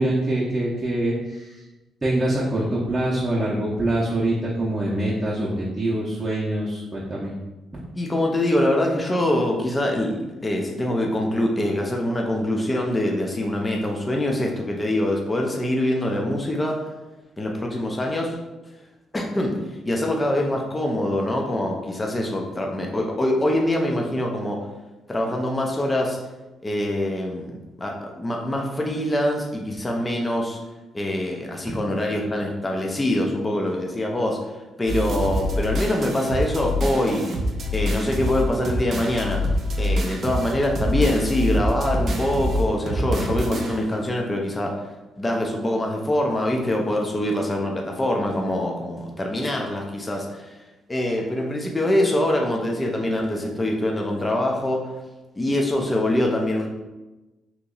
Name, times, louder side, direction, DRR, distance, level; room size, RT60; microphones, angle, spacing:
voice 1, 0.0-1.6 2.0-7.3, right 1 dB, 20° right, -7 dB, 0.8 m, -24 dB
voice 2, 7.9-16.9 17.4-18.4 19.1-19.6 19.8-24.7 25.1-26.2 26.6-30.6 30.9-34.5 34.8-37.2 37.7-39.4 39.8-50.5 50.9-54.9 55.4-56.7, left 1 dB, 20° left, 0 dB, 0.6 m, -24 dB
sound 1, 34.9-44.0, equal, 55° right, 0.6 m, -26 dB
2.9 x 2.6 x 3.8 m, 1.1 s
cardioid pair, 90°, 0 cm